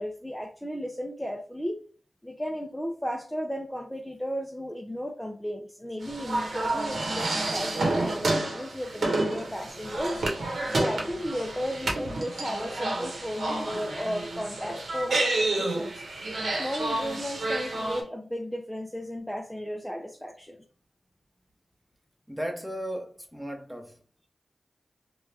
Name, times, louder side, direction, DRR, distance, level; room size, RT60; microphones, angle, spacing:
voice 1, 0.0-1.8 2.2-10.2 10.8-16.0 16.6-20.6, equal, 10° left, 0.4 m, -34 dB
sound 1, 6.0-18.0, right 2 dB, 80° right, 1.0 m, -29 dB
voice 2, 22.3-24.0, equal, 5° right, 0.8 m, -35 dB
3.0 x 2.3 x 3.3 m
cardioid pair, 60°, 0 cm